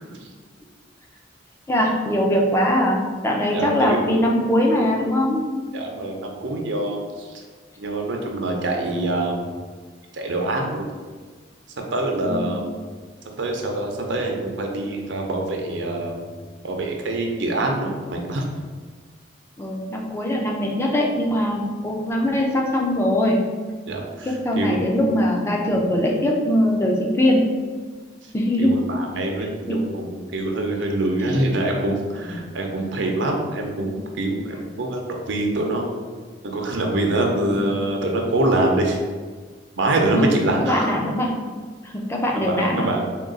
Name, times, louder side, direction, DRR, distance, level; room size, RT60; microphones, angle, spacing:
voice 1, 1.7-3.0 3.2-5.4 12.3-12.5 19.6-23.4 24.2-27.4 28.3-28.7 29.7-29.8 37.4-37.6 40.0-41.3 41.8-42.9, left 1 dB, 15° left, -1 dB, 0.4 m, -21 dB
voice 2, 3.5-4.0 5.7-7.4 7.8-9.4 10.1-10.8 11.9-12.7 13.4-16.2 16.6-18.4 23.9-24.9 28.6-35.9 36.4-39.0 39.8-40.9 42.3-43.0, right 2 dB, 80° right, 1 dB, 0.6 m, -25 dB
3.7 x 2.3 x 3.8 m, 1.5 s
head